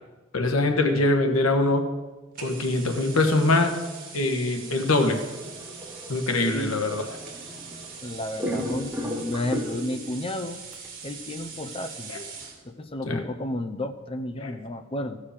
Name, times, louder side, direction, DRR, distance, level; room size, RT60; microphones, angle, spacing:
voice 1, 0.3-1.9 2.4-3.7 4.1-5.2 6.1-7.2 12.1-12.2 13.1-13.2 14.4-14.5, left 2 dB, 85° left, 5 dB, 1.3 m, -23 dB
sound 1, 2.3-12.6, right 5 dB, 45° right, 1.8 m, -42 dB
sound 2, 5.0-8.0 8.4-10.1 10.7-10.9, equal, 10° right, 1.4 m, -35 dB
voice 2, 8.0-10.6 11.0-12.1 12.6-15.2, left 1 dB, 25° left, 8 dB, 0.6 m, -32 dB
14.0 x 4.9 x 7.2 m, 1.2 s
head